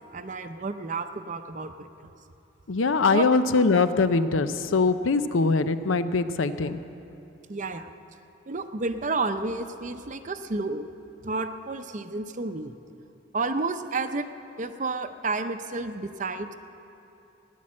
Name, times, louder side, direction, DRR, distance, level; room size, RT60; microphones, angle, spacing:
voice 1, 0.1-2.1 3.1-3.3 7.5-7.9 8.5-10.9 11.2-12.7 13.3-14.3 14.6-16.5, right 3 dB, 40° right, 9 dB, 0.6 m, -31 dB
voice 2, 2.7-6.8, left 4 dB, 85° left, 12 dB, 0.6 m, -22 dB
17.0 x 10.5 x 7.5 m, 2.9 s
head